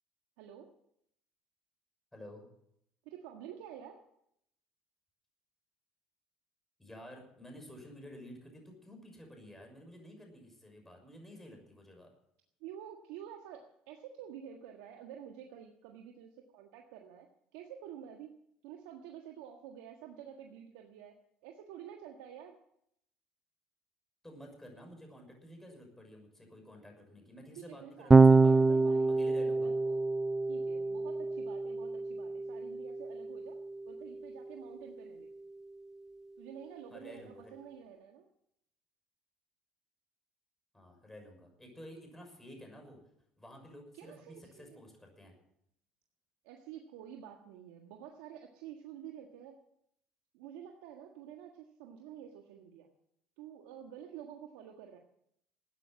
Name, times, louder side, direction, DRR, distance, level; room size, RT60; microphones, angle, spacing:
voice 1, 0.4-0.7 3.0-4.0 12.6-17.3 17.5-18.4 18.6-21.2 21.4-22.6 27.6-30.0 30.5-33.6 33.8-35.3 36.4-38.3 43.9-44.8 46.4-49.6 50.3-52.9 53.4-55.0, right 9 dB, 85° right, 2 dB, 1.6 m, -49 dB
voice 2, 2.1-2.4 6.8-12.1 24.2-29.7 36.9-37.5 40.7-43.0 43.4-45.3, equal, 10° left, 3 dB, 6.2 m, -51 dB
Electric guitar / Bass guitar, 28.1-34.5, right 3 dB, 20° right, 0.5 m, -27 dB
14.0 x 9.6 x 8.2 m, 0.73 s
supercardioid pair, 90°, 3 cm